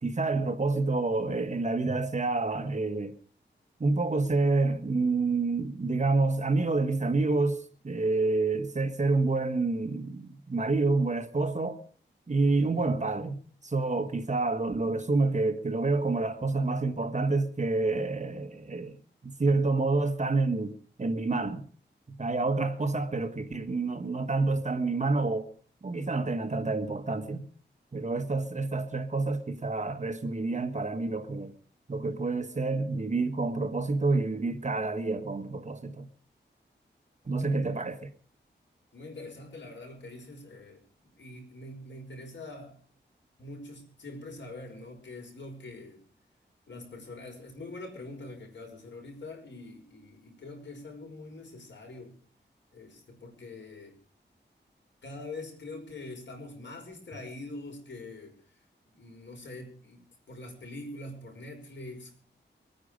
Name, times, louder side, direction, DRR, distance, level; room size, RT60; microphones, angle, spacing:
voice 1, 0.0-3.2 3.8-11.8 12.3-19.0 19.2-21.6 22.1-25.5 25.8-27.5 27.9-31.5 31.9-36.1 37.3-38.0, right 3 dB, 40° right, 1.5 m, -28 dB
voice 2, 12.6-12.9 22.6-22.7 37.2-37.8 38.9-42.8 43.4-46.0 46.7-52.2 52.7-54.0 55.0-58.6 58.9-62.1, left 2 dB, 75° left, 5.5 m, -44 dB
24.0 x 9.6 x 5.1 m
wide cardioid pair, 105°, 19 cm